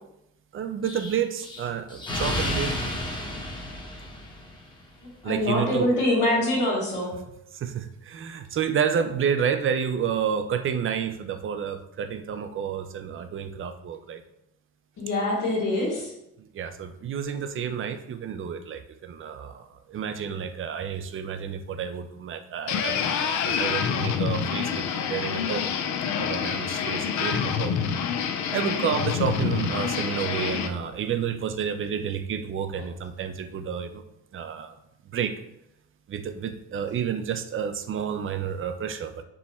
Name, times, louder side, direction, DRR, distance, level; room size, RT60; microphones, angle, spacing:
voice 1, 0.5-2.8 5.2-6.0 7.1-7.2 7.5-14.2 16.4-25.7 26.1-27.8 28.5-34.0 34.3-34.8 35.1-35.4 36.1-39.2, right 7 dB, 45° right, 9 dB, 0.5 m, -30 dB
Explosion, 0.8-4.7, left 1 dB, 15° left, 0.9 m, -31 dB
voice 2, 5.0-7.1 15.0-16.1, left 1 dB, 90° left, -9 dB, 1.4 m, -24 dB
sound 1, 22.7-30.7, left 7 dB, 75° left, 0.5 m, -27 dB
4.5 x 2.1 x 4.2 m, 0.82 s
cardioid pair, 90°, 30 cm